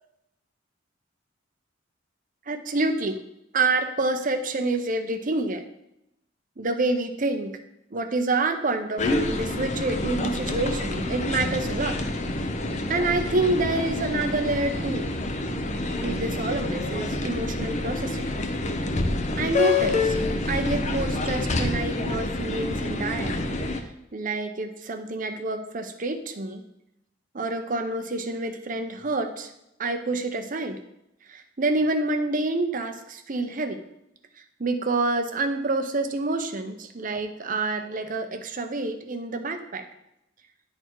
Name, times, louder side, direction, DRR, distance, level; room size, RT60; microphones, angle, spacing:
voice 1, 2.5-3.2 3.5-5.6 6.6-7.5 7.9-12.0 12.9-15.1 16.0-18.3 19.4-20.2 20.5-23.6 24.1-26.6 27.3-29.5 29.8-30.8 31.3-33.8 34.6-39.9, right 2 dB, 45° right, 7 dB, 0.7 m, -27 dB
sound 1, 9.0-23.8, left 2 dB, 40° left, 0.6 m, -27 dB
10.0 x 4.2 x 4.6 m, 0.84 s
head